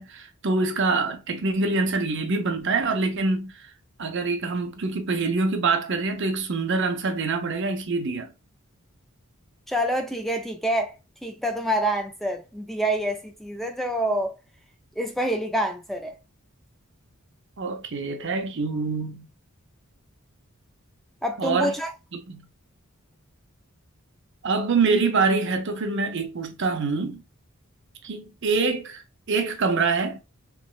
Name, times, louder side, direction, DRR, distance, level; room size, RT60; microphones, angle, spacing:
voice 1, 0.0-3.6 4.0-8.3 17.6-19.3 21.4-21.7 22.1-22.4 24.4-27.2 28.0-30.2, right 4 dB, 55° right, 0.7 m, -25 dB
voice 2, 9.7-10.9 11.2-14.3 15.0-16.1 21.2-21.9, right 1 dB, ahead, 0.3 m, -27 dB
3.4 x 3.1 x 2.4 m
head